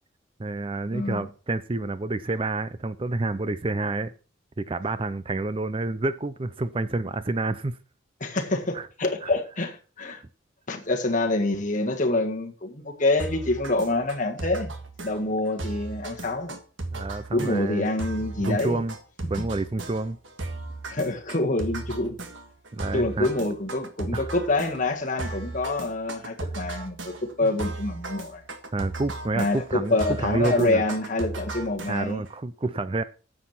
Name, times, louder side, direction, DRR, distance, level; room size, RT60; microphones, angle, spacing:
voice 1, 0.4-4.1 4.6-7.8 8.7-8.9 9.2-9.3 16.9-17.9 18.4-18.9 19.3-20.2 22.7-23.3 24.1-24.3 26.4-26.5 27.4-27.5 28.7-30.8 31.9-33.0, right 2 dB, 25° right, 0.5 m, -28 dB
voice 2, 0.9-1.3 8.2-10.2 10.7-14.7 15.0-16.6 17.3-18.8 19.2-19.3 20.9-22.2 22.8-28.4 29.3-32.2, left 2 dB, 40° left, 1.8 m, -26 dB
sound 1, 13.2-32.3, right 2 dB, 75° right, 1.7 m, -36 dB
10.0 x 7.5 x 6.0 m
head